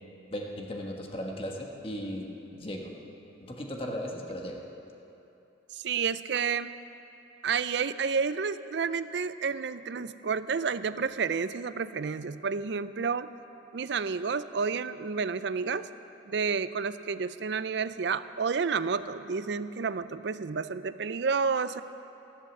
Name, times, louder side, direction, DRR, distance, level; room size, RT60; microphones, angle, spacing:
voice 1, 0.3-2.9 3.4-4.6, equal, 30° left, 0 dB, 1.3 m, -37 dB
voice 2, 5.7-6.7 7.4-13.3 13.7-15.9 16.3-21.8, right 5 dB, 60° right, 13 dB, 0.4 m, -30 dB
14.0 x 11.5 x 7.1 m, 3.0 s
head